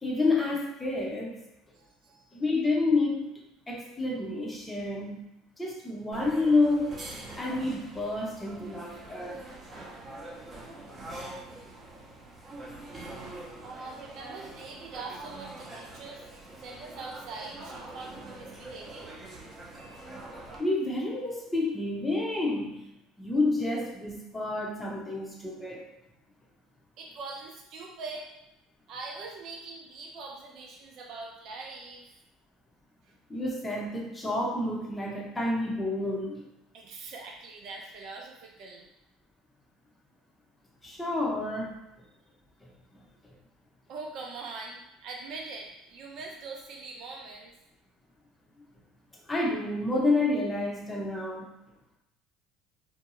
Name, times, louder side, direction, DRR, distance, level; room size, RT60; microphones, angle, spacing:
voice 1, 0.0-1.4 2.3-3.4 3.7-5.2 5.6-7.0 7.4-9.4 20.6-22.9 23.2-25.9 33.3-36.4 40.8-41.8 49.3-51.5, left 2 dB, 15° left, -2 dB, 0.7 m, -29 dB
voice 2, 1.7-2.4 13.6-16.3 16.6-19.1 27.0-28.3 28.9-32.1 36.7-38.9 43.9-47.5, right 3 dB, 60° right, 0 dB, 0.6 m, -42 dB
sound 1, 6.1-20.6, right 2 dB, 30° right, 0.8 m, -44 dB
2.6 x 2.2 x 3.0 m, 0.91 s
hypercardioid pair, 75°, 0 cm